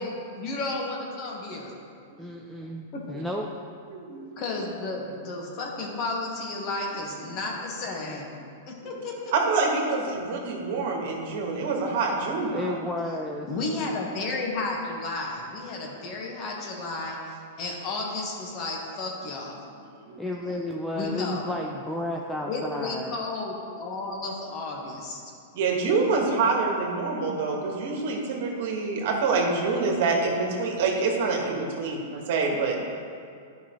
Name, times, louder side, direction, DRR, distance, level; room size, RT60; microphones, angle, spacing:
voice 1, 0.0-1.7 2.9-3.0 4.4-8.3 8.7-9.3 13.5-19.6 20.9-21.5 22.4-25.2, left 3 dB, 40° left, -1 dB, 1.4 m, -32 dB
voice 2, 2.2-3.5 12.5-13.5 20.2-23.2, left 1 dB, 5° left, -1 dB, 0.5 m, -32 dB
voice 3, 3.9-4.2 9.3-12.7 20.1-20.2 25.5-32.9, right 4 dB, 60° right, 0 dB, 1.5 m, -26 dB
11.0 x 5.4 x 3.1 m, 2.4 s
hypercardioid pair, 130°, 0 cm